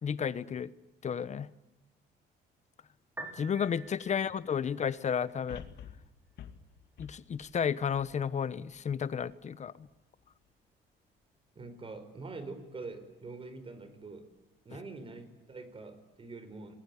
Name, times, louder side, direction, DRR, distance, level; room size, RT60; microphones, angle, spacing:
voice 1, 0.0-0.7 1.0-1.5 3.4-5.6 7.0-9.9, left 7 dB, 40° left, 17 dB, 1.1 m, -32 dB
Piano, 3.0-16.0, right 2 dB, 10° right, 5.8 m, -55 dB
sound 1, 5.5-8.8 9.3-9.4, left 9 dB, 65° left, 2.4 m, -50 dB
voice 2, 11.5-14.3 14.6-16.7, right 3 dB, 30° right, 11 dB, 4.8 m, -45 dB
28.5 x 21.0 x 9.9 m, 0.94 s
cardioid pair, 125°, 19 cm